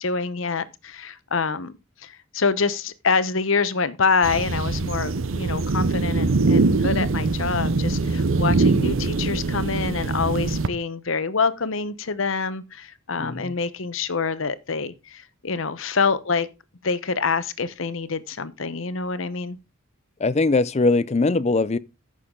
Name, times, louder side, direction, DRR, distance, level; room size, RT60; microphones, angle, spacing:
voice 1, 0.0-16.5 16.8-19.6, left 4 dB, 65° left, 0.9 m, -26 dB
sound 1, 4.2-10.7, right 3 dB, 65° right, 0.7 m, -22 dB
voice 2, 13.2-13.5 20.2-21.8, left 3 dB, 30° left, 0.5 m, -21 dB
14.0 x 6.6 x 3.8 m
head